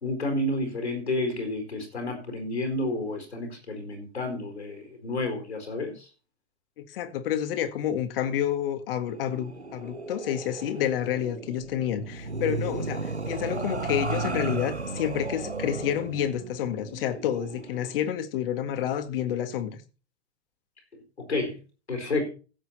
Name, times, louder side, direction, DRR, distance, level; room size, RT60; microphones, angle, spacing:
voice 1, 0.0-6.1 21.2-21.6 21.9-22.3, left 2 dB, 80° left, 4.5 m, -30 dB
voice 2, 6.8-19.8, left 10 dB, 55° left, 1.8 m, -29 dB
sound 1, 9.1-18.0, right 3 dB, 90° right, 1.1 m, -35 dB
15.5 x 8.1 x 4.2 m
figure-of-eight pair, 85°, 33 cm